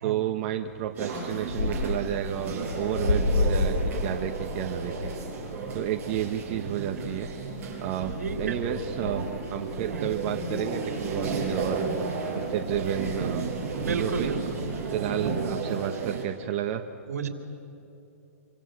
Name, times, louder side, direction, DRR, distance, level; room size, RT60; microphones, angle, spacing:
voice 1, 0.0-5.1 5.7-7.3 7.8-9.2 9.5-11.9 12.3-13.5 13.9-14.3 14.9-16.8, right 11 dB, 35° right, 5 dB, 1.2 m, -31 dB
sound 1, 0.6-15.6, left 3 dB, 85° left, 4.3 m, -34 dB
sound 2, 0.9-16.2, right 4 dB, 20° right, 6.5 m, -33 dB
voice 2, 8.2-8.6 9.9-10.1 13.7-14.4 17.1-17.3, right 6 dB, 75° right, 5 dB, 3.4 m, -31 dB
27.0 x 25.0 x 8.3 m, 2.9 s
hypercardioid pair, 145°, 8 cm